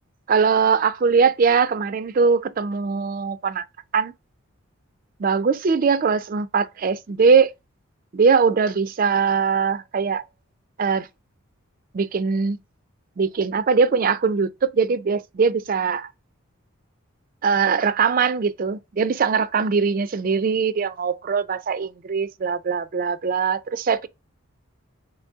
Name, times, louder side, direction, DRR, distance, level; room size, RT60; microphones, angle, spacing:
voice 1, 0.3-3.6 3.9-4.1 5.2-7.5 8.1-10.2 10.8-11.1 11.9-12.6 13.2-16.1 17.4-24.1, right 5 dB, 40° right, 0.3 m, -21 dB
4.2 x 2.7 x 3.4 m
head